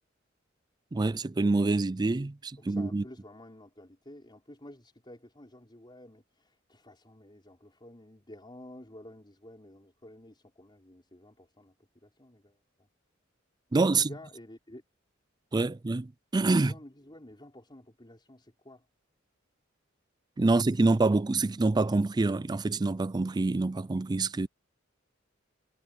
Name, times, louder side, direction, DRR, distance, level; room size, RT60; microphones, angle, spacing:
voice 1, 0.9-3.0 13.7-14.1 15.5-16.7 20.4-24.5, right 3 dB, 20° right, 0.4 m, -26 dB
voice 2, 2.6-11.7 12.0-12.9 13.9-14.8 16.6-18.9, left 1 dB, 25° left, 4.3 m, -51 dB
head